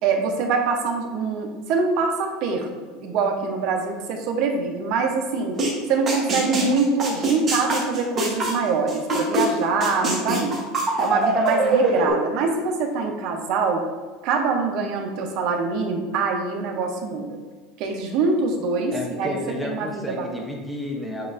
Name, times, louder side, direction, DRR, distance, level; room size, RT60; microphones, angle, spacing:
voice 1, 0.0-2.7 3.0-5.6 5.9-10.6 11.0-13.8 14.2-17.4 17.8-20.3, right 4 dB, 50° right, 3 dB, 0.6 m, -24 dB
sound 1, 5.6-5.7 6.1-9.5 9.8-12.1, right 2 dB, 25° right, 1.0 m, -22 dB
voice 2, 18.9-21.3, left 1 dB, 5° left, 0 dB, 0.6 m, -31 dB
7.3 x 2.4 x 2.5 m, 1.4 s
supercardioid pair, 160°, 0 cm